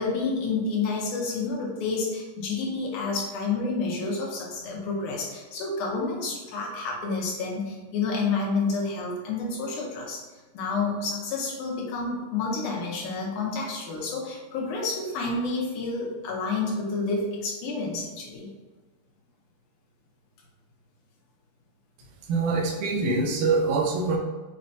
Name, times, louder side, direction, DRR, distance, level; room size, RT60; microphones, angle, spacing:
voice 1, 0.0-10.2 10.5-18.5, left 4 dB, 80° left, -2 dB, 2.3 m, -29 dB
voice 2, 22.3-24.2, right 3 dB, 80° right, 2 dB, 1.9 m, -24 dB
6.0 x 2.2 x 2.6 m, 1.3 s
omnidirectional pair, 3.6 m